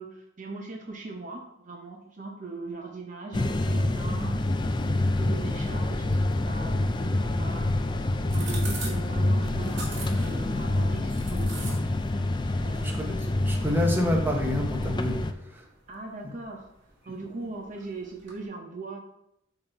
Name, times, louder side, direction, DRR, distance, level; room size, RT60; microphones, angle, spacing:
voice 1, 0.0-4.4 4.8-7.7 8.3-11.8 12.6-12.9 15.9-16.7 17.0-19.0, right 3 dB, 40° right, 1 dB, 0.7 m, -40 dB
sound 1, 3.3-15.3, left 1 dB, 25° left, 0.4 m, -27 dB
sound 2, 6.8-18.5, right 3 dB, 70° right, 2.2 m, -46 dB
voice 2, 12.8-15.7, left 1 dB, 10° right, 1 dB, 1.0 m, -28 dB
8.4 x 3.9 x 4.5 m, 0.80 s
head